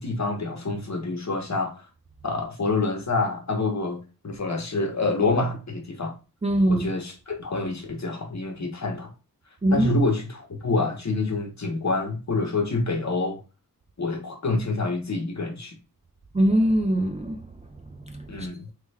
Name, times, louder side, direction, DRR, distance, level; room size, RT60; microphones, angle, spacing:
voice 1, 0.0-1.8 2.2-4.0 4.2-6.1 6.7-9.1 9.7-13.4 14.0-15.8 18.3-18.7, left 3 dB, 50° left, 0.9 m, -27 dB
voice 2, 6.4-6.9 9.6-9.9 16.3-17.4 18.1-18.5, right 1 dB, 20° right, 0.4 m, -22 dB
3.3 x 2.2 x 3.2 m
wide cardioid pair, 60°, 36 cm